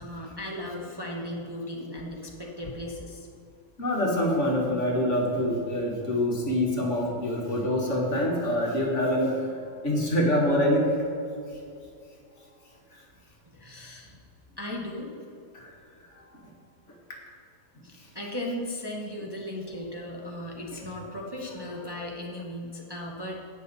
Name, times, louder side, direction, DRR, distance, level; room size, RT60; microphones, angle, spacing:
voice 1, 0.0-3.3 13.5-14.2 14.6-15.1 17.8-23.4, left 1 dB, 20° right, -2 dB, 0.9 m, -36 dB
voice 2, 3.8-9.6 9.8-10.9 12.9-13.0 15.5-15.7, left 1 dB, 45° left, -2 dB, 1.9 m, -25 dB
17.5 x 6.2 x 4.1 m, 2.5 s
omnidirectional pair, 1.7 m